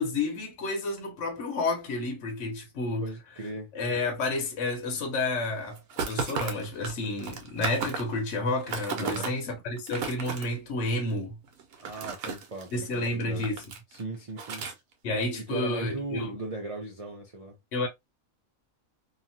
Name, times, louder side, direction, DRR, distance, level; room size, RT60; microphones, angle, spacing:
voice 1, 0.0-3.1 3.7-11.4 12.7-13.6 15.0-16.4 17.7-17.9, left 2 dB, 55° left, 1.1 m, -30 dB
voice 2, 3.0-3.7 9.0-9.4 11.8-13.5 13.9-14.6 15.4-17.6, right 2 dB, 55° right, 0.4 m, -38 dB
sound 1, 5.8-8.2 8.5-9.3 9.8-10.4 11.5-12.9 13.2-14.0 14.4-14.7, right 5 dB, 75° right, 1.2 m, -34 dB
2.9 x 2.5 x 2.6 m
omnidirectional pair, 1.6 m